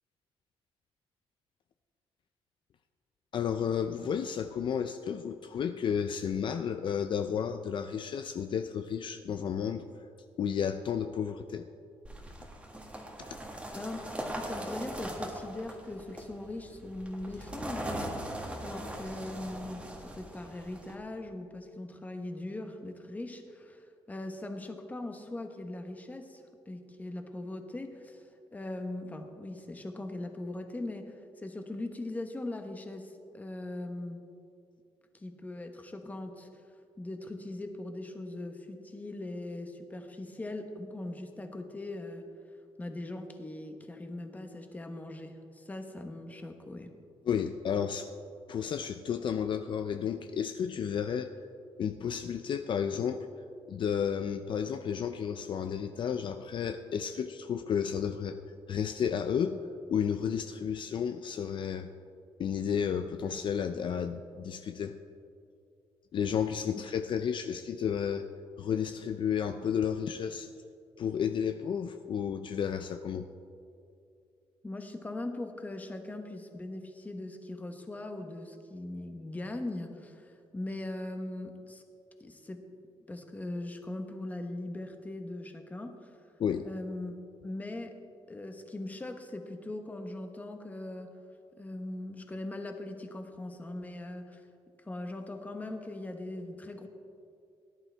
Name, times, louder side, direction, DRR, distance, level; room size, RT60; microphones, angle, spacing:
voice 1, 3.3-9.9 10.4-11.7 13.2-13.3 47.3-48.1 48.5-51.3 51.8-53.3 53.7-58.4 58.7-59.6 59.9-61.9 62.4-65.0 66.1-68.3 68.6-70.5 71.0-73.3 86.4-86.7, left 7 dB, 50° left, 8 dB, 0.5 m, -32 dB
sound 1, 12.0-20.9, right 1 dB, 10° right, 1.6 m, -40 dB
voice 2, 13.7-14.1 14.4-34.2 35.1-36.5 37.0-42.3 42.8-46.9 74.6-81.8 82.2-82.6 83.1-86.2 86.6-87.1 87.4-88.0 88.3-91.1 91.6-94.5 94.8-96.9, left 2 dB, 15° left, 5 dB, 1.1 m, -40 dB
18.0 x 11.0 x 3.4 m, 2.5 s
cardioid pair, 135°, 10 cm